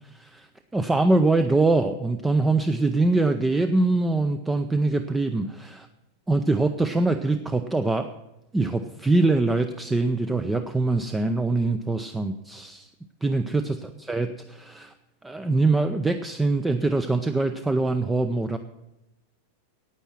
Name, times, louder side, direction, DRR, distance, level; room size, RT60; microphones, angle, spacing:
voice 1, 0.1-0.5 0.7-5.9 6.3-8.1 8.5-12.9 13.2-13.8 14.1-14.9 15.2-18.6, right 2 dB, 10° right, 9 dB, 0.5 m, -23 dB
9.6 x 9.1 x 7.4 m, 0.91 s
figure-of-eight pair, 90°, 0 cm